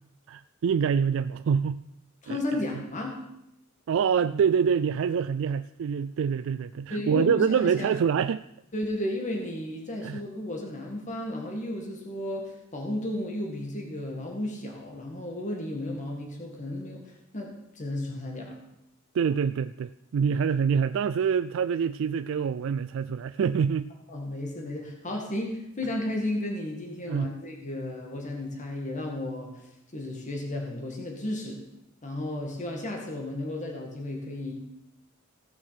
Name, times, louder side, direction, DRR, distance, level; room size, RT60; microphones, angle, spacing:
voice 1, 0.3-1.8 2.3-2.6 3.9-8.4 10.0-10.2 19.1-23.9 27.1-27.3, right 7 dB, 65° right, 12 dB, 0.3 m, -26 dB
voice 2, 2.2-3.2 6.9-7.9 8.7-18.6 24.1-29.5 29.9-31.6 32.0-34.5, left 1 dB, 35° left, 1 dB, 2.0 m, -33 dB
16.5 x 6.3 x 5.9 m, 0.83 s
head